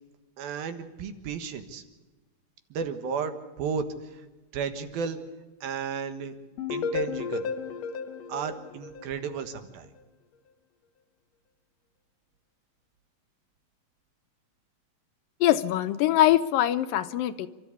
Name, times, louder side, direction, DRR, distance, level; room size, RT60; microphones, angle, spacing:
voice 1, 0.4-1.8 2.7-3.9 4.1-4.2 4.5-5.2 5.6-6.3 6.7-7.5 8.3-9.9, right 6 dB, 80° right, 8 dB, 3.3 m, -33 dB
sound 1, 6.6-9.5, left 5 dB, 60° left, 2.1 m, -33 dB
voice 2, 15.4-17.5, left 13 dB, 75° left, 11 dB, 2.4 m, -23 dB
29.0 x 13.0 x 8.4 m, 1.2 s
omnidirectional pair, 4.2 m